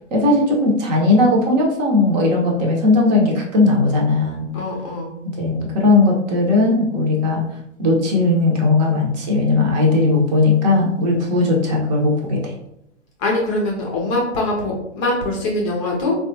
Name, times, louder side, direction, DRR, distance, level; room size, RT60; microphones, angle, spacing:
voice 1, 0.1-4.5 5.2-7.4 7.8-12.4, left 2 dB, 35° right, 0 dB, 0.8 m, -17 dB
voice 2, 4.5-5.1 13.2-16.2, left 2 dB, 30° left, -1 dB, 0.5 m, -22 dB
3.5 x 2.3 x 2.7 m, 0.78 s
figure-of-eight pair, 115°, 36 cm